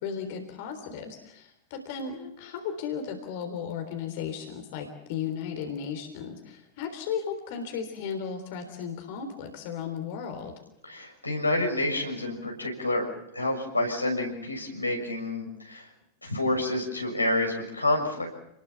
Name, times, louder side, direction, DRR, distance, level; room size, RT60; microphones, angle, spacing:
voice 1, 0.0-10.5, left 7 dB, 50° left, 5 dB, 3.7 m, -35 dB
voice 2, 10.8-13.0 13.3-15.9 16.2-18.3, left 1 dB, 85° left, 1 dB, 6.4 m, -28 dB
29.5 x 21.0 x 7.2 m, 0.80 s
figure-of-eight pair, 90°, 0 cm